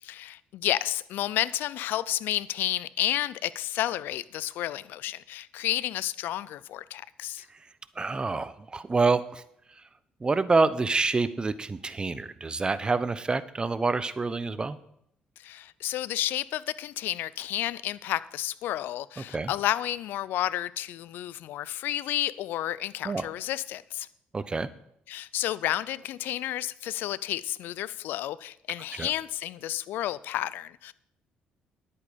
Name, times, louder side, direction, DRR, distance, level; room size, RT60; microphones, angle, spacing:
voice 1, 0.0-7.4 15.4-24.1 25.1-30.9, left 13 dB, 75° left, 0.4 m, -31 dB
voice 2, 8.0-9.4 10.2-14.8 19.3-19.5 23.0-23.3 24.3-24.7 29.0-29.1, right 3 dB, 25° right, 0.8 m, -27 dB
10.5 x 8.6 x 5.2 m
supercardioid pair, 70°, 3 cm